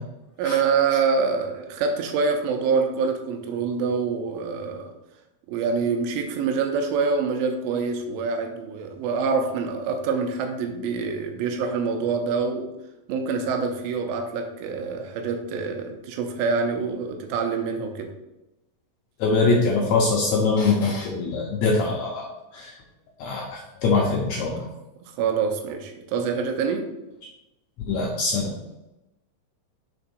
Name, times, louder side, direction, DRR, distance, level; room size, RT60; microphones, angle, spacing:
voice 1, 0.4-4.9 5.5-12.7 13.1-18.1 25.0-26.9, right 5 dB, 85° right, 4 dB, 2.4 m, -26 dB
voice 2, 19.2-22.3 22.5-22.7 23.2-24.7 27.9-28.5, left 3 dB, 85° left, 0 dB, 1.5 m, -23 dB
5.8 x 3.5 x 5.3 m, 0.96 s
omnidirectional pair, 4.1 m